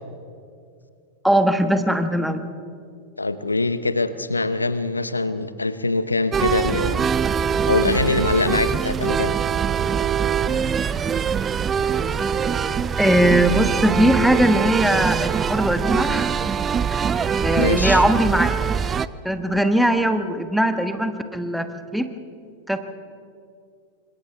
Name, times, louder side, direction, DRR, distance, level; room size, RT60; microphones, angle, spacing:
voice 1, 1.2-2.4 13.0-16.4 16.9-17.1 17.4-18.5 19.2-22.1 22.7-22.8, right 1 dB, ahead, 8 dB, 1.4 m, -20 dB
voice 2, 3.2-7.0 7.7-9.3 17.6-18.0, left 2 dB, 80° left, 14 dB, 0.9 m, -23 dB
sound 1, 6.3-19.1, right 7 dB, 20° right, 0.5 m, -23 dB
28.0 x 26.0 x 3.6 m, 2.4 s
figure-of-eight pair, 90°, 0 cm